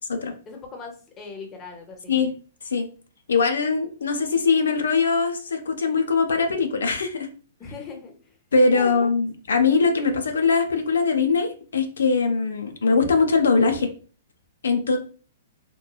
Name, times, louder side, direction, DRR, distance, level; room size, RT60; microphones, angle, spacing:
voice 1, 0.4-2.2 7.6-8.4 8.7-9.1, left 4 dB, 25° left, 3 dB, 0.7 m, -39 dB
voice 2, 3.3-7.3 8.5-13.9 14.6-15.0, left 4 dB, 85° left, 5 dB, 0.4 m, -21 dB
2.9 x 2.2 x 2.3 m, 0.38 s
hypercardioid pair, 130°, 0 cm